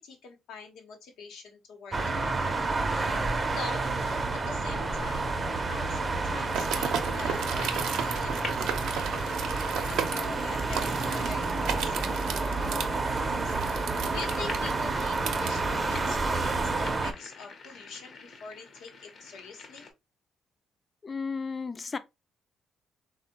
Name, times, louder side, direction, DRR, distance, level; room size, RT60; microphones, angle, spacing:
voice 1, 0.0-2.5 3.5-5.3 5.7-9.0 9.4-19.9, left 4 dB, 85° left, 0.9 m, -45 dB
sound 1, 1.9-17.1, right 3 dB, 30° right, 0.5 m, -29 dB
sound 2, 6.5-15.5, right 7 dB, 85° right, 0.5 m, -34 dB
sound 3, 7.1-19.9, left 4 dB, 55° left, 0.7 m, -47 dB
voice 2, 21.0-22.0, left 5 dB, 35° left, 0.3 m, -33 dB
3.4 x 2.1 x 2.8 m
cardioid pair, 90°, 0 cm